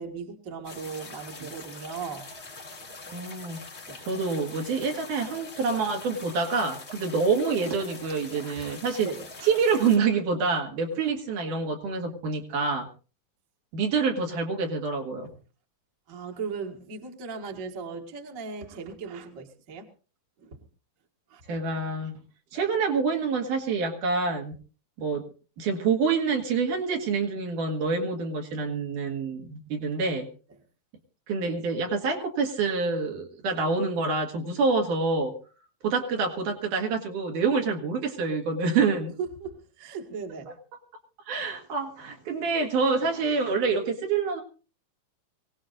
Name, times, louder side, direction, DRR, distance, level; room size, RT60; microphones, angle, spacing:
voice 1, 0.0-2.3 3.9-4.0 8.0-8.1 8.4-8.6 9.0-9.5 11.0-11.1 16.1-19.9 20.4-20.6 21.3-21.4 39.2-40.5, right 5 dB, 35° right, 1 dB, 1.5 m, -37 dB
sound 1, 0.6-10.0, left 3 dB, 40° left, 0.9 m, -43 dB
voice 2, 3.1-3.6 4.0-9.1 9.5-12.9 13.7-15.3 21.5-22.1 22.5-24.5 25.0-25.2 25.6-30.3 31.3-35.3 35.8-39.1 41.3-44.4, right 4 dB, 70° right, 3 dB, 3.4 m, -27 dB
24.5 x 17.5 x 2.5 m, 0.37 s
omnidirectional pair, 3.9 m